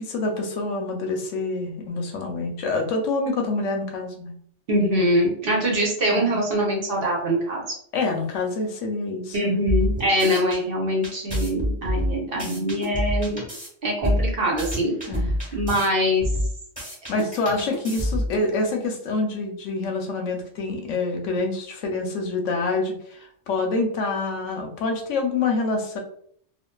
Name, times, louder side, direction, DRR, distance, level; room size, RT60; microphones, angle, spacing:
voice 1, 0.0-4.3 6.1-6.4 7.9-9.7 12.3-12.7 15.1-15.6 17.1-26.0, left 3 dB, 85° left, 3 dB, 0.9 m, -27 dB
voice 2, 4.7-7.6 9.3-13.4 13.8-14.9 15.5-16.3, equal, 55° right, -2 dB, 0.9 m, -23 dB
sound 1, 9.7-10.6 11.0-13.7 14.0-15.9 16.2-18.4, equal, 5° right, 1.0 m, -26 dB
2.5 x 2.4 x 2.2 m, 0.62 s
omnidirectional pair, 1.3 m